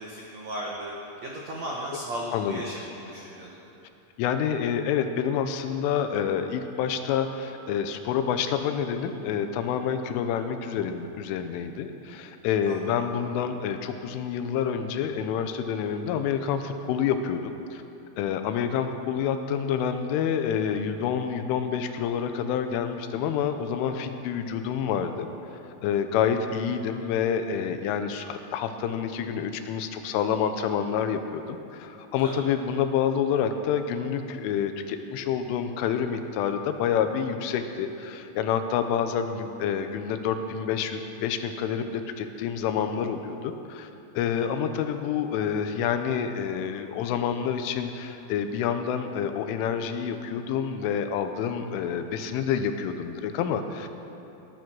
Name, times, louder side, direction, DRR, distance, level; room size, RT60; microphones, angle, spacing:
voice 1, 0.0-3.6 12.6-13.0 32.2-32.5 44.2-44.5, right 1 dB, 80° right, -3 dB, 1.5 m, -36 dB
voice 2, 2.3-2.6 4.2-17.8 18.2-25.3 25.8-43.9 44.1-53.9, left 8 dB, 80° left, 8 dB, 3.2 m, -28 dB
19.5 x 12.0 x 6.1 m, 2.9 s
omnidirectional pair, 5.8 m